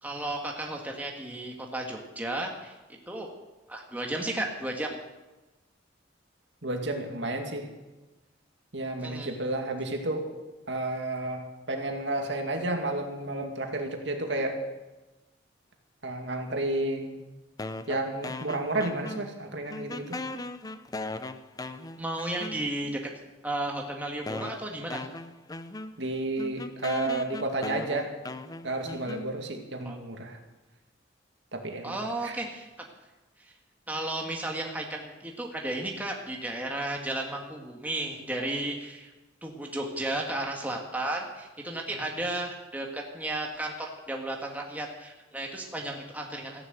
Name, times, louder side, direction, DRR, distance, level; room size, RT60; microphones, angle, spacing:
voice 1, 0.0-2.7 3.1-3.3 3.7-5.0 9.0-9.3 22.0-23.0 23.4-25.0 29.8-30.0 31.8-32.7 33.9-39.1 39.4-46.7, right 1 dB, 10° right, 0 dB, 1.8 m, -33 dB
voice 2, 6.6-7.7 8.7-10.3 10.7-14.6 16.0-17.2 17.9-20.2 26.0-28.2 28.6-30.4 31.5-32.4 41.9-42.0, right 2 dB, 65° right, 3 dB, 2.4 m, -31 dB
sound 1, 17.6-19.4 19.7-22.9 23.7-23.8 24.3-29.7, left 2 dB, 20° left, 0.5 m, -38 dB
15.0 x 11.0 x 8.0 m, 1.1 s
head